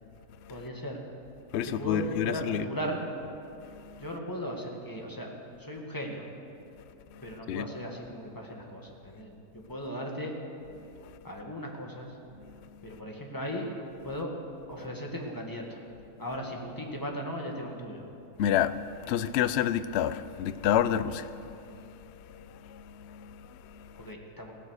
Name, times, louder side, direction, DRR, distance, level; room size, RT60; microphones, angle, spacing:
voice 1, 0.5-1.0 1.8-3.0 4.0-5.3 5.6-6.3 7.2-10.3 11.2-12.2 12.8-13.7 14.0-14.3 14.7-15.8 16.2-18.0 23.9-24.5, equal, 10° left, 1.8 m, -37 dB
voice 2, 1.5-2.7 3.6-4.0 7.1-7.7 10.8-11.2 12.4-12.8 18.4-24.1, left 9 dB, 85° left, 0.5 m, -31 dB
16.5 x 13.0 x 6.5 m
omnidirectional pair, 1.8 m